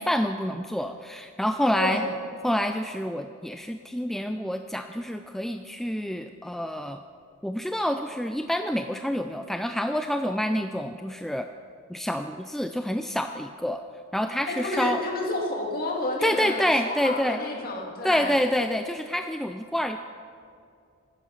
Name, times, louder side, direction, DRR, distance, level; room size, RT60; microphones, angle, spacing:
voice 1, 0.0-2.0 2.4-7.0 7.4-11.5 11.9-13.8 14.1-15.0 16.2-17.4 18.0-20.0, equal, ahead, 7 dB, 0.3 m, -27 dB
voice 2, 1.7-2.1 14.5-18.4, left 2 dB, 45° left, 0 dB, 2.3 m, -30 dB
15.0 x 11.0 x 5.7 m, 2.4 s
head